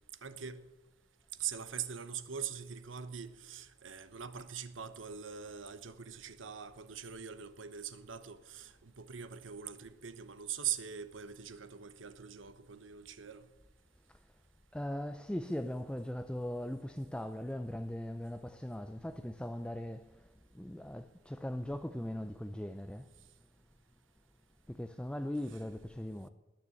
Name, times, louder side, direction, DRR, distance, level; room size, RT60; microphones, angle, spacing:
voice 1, 0.2-0.6 1.4-13.5, right 8 dB, 80° right, 1.1 m, -42 dB
voice 2, 14.7-20.2 20.5-23.1 24.7-26.3, left 1 dB, 5° left, 0.5 m, -39 dB
19.5 x 6.8 x 8.4 m
head